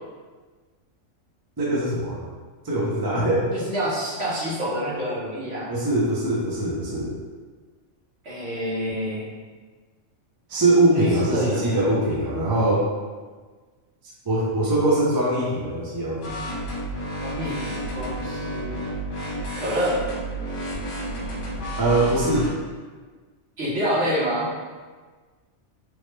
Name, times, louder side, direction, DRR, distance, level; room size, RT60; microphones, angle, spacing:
voice 1, 1.6-2.2 2.6-3.5 5.7-7.1 10.5-12.8 14.3-16.2 21.8-22.5, right 1 dB, 30° right, -6 dB, 0.4 m, -22 dB
voice 2, 3.5-5.7 8.2-9.3 10.9-11.6 17.2-18.9 19.5-20.0 23.6-24.5, equal, 60° right, -8 dB, 1.2 m, -27 dB
sound 1, 16.2-22.5, equal, 65° left, 1.2 m, -31 dB
3.4 x 2.1 x 3.2 m, 1.4 s
omnidirectional pair, 1.4 m